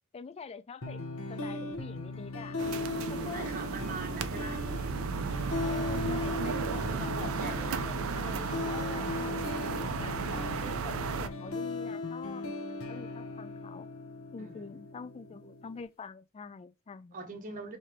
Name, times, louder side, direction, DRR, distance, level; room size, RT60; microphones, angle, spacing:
voice 1, 0.1-2.6 3.1-3.5 4.1-4.6 5.6-13.9 14.3-17.2, left 5 dB, 30° left, 0.3 m, -46 dB
sound 1, 0.8-15.8, left 3 dB, 65° left, 0.9 m, -38 dB
sound 2, 2.6-11.3, right 5 dB, 70° right, 0.5 m, -34 dB
voice 2, 3.3-4.6 7.0-7.9 14.4-14.5 17.1-17.8, right 3 dB, 40° right, 0.8 m, -42 dB
3.3 x 2.8 x 4.6 m
head